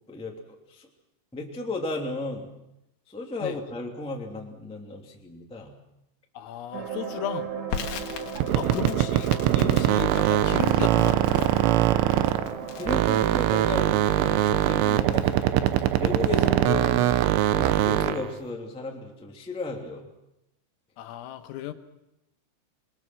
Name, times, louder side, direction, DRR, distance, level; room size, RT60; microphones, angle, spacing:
voice 1, 0.1-0.4 0.7-0.9 1.3-2.5 3.1-5.7 8.3-8.7 12.7-15.7 16.0-17.1 17.5-20.1, left 2 dB, 5° left, 0 dB, 0.7 m, -34 dB
voice 2, 6.4-7.5 8.5-9.3 9.5-11.5 16.3-17.3 21.0-21.7, left 12 dB, 85° left, 7 dB, 3.9 m, -35 dB
sound 1, 6.7-13.2, right 6 dB, 60° right, 2.0 m, -36 dB
Crackle, 7.7-16.5, left 7 dB, 65° left, 3.2 m, -42 dB
sound 2, 8.4-12.6 12.9-18.3, right 13 dB, 75° right, 3.2 m, -22 dB
27.5 x 21.5 x 6.1 m, 0.87 s
omnidirectional pair, 5.9 m